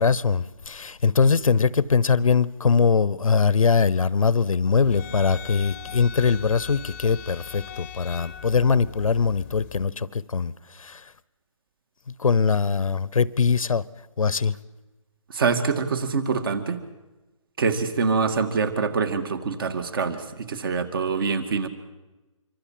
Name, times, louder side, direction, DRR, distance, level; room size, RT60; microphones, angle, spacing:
voice 1, 0.0-11.0 12.2-13.8 14.2-14.6, left 5 dB, 80° left, 1.0 m, -22 dB
sound 1, 4.8-9.9, left 9 dB, 25° left, 1.0 m, -40 dB
voice 2, 15.3-16.8 17.6-21.7, right 5 dB, 40° right, 2.3 m, -25 dB
26.0 x 24.0 x 7.6 m
hypercardioid pair, 160°, 17 cm